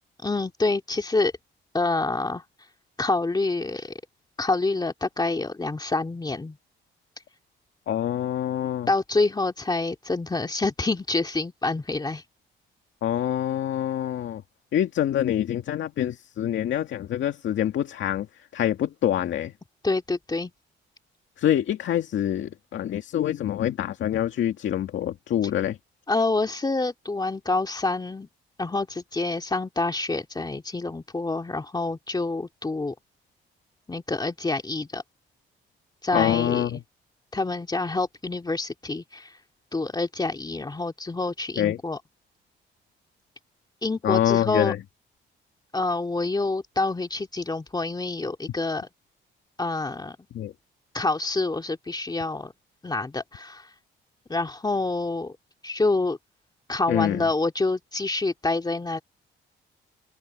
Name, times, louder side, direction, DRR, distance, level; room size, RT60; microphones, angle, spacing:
voice 1, 0.2-1.3 1.7-2.4 3.0-4.0 4.4-6.6 8.9-12.2 19.8-20.5 26.1-28.3 28.6-32.9 33.9-35.0 36.0-36.8 37.3-39.4 39.7-42.0 43.8-44.7 45.7-48.9 49.6-50.2 50.9-52.5 52.8-53.7 54.3-55.3 55.6-56.2 56.7-59.0, left 3 dB, 20° left, 2.3 m, -27 dB
voice 2, 7.9-8.9 13.0-14.4 14.7-18.3 18.5-19.5 21.4-25.8 36.1-36.8 41.6-41.8 44.0-44.8 50.3-50.5 56.9-57.2, left 11 dB, 70° left, 2.1 m, -25 dB
open air
cardioid pair, 90°, 20 cm